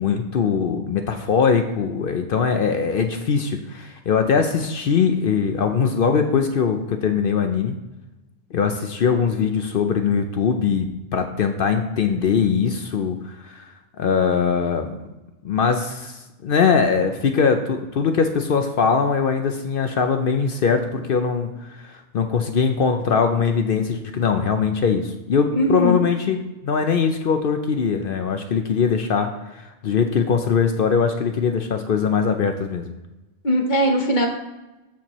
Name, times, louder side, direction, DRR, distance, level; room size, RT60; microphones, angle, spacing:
voice 1, 0.0-7.8 8.5-10.9 11.1-13.7 14.0-15.0 15.4-26.4 26.6-32.9, left 6 dB, 60° left, 6 dB, 0.6 m, -21 dB
voice 2, 25.5-26.0 33.4-34.3, equal, 40° left, 2 dB, 1.0 m, -20 dB
13.0 x 4.4 x 3.0 m, 1.0 s
omnidirectional pair, 1.3 m